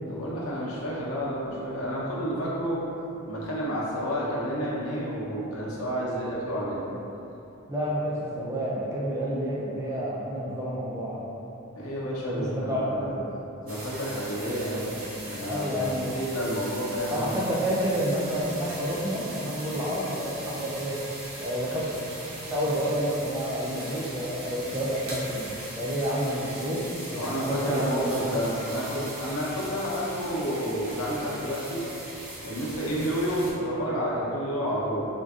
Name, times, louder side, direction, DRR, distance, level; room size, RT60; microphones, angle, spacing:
voice 1, 0.1-2.8 3.2-6.8 11.7-13.1 13.6-14.9 15.2-17.6 27.1-31.8 32.4-35.1, equal, 90° left, -6 dB, 0.7 m, -30 dB
voice 2, 7.7-11.2 12.2-13.3 15.4-16.2 17.1-21.0 21.4-21.9 22.4-26.8 27.1-28.4, equal, 15° right, -6 dB, 0.3 m, -29 dB
sound 1, 13.7-33.5, right 1 dB, 75° right, 0.9 m, -40 dB
3.7 x 2.5 x 2.3 m, 3.0 s
head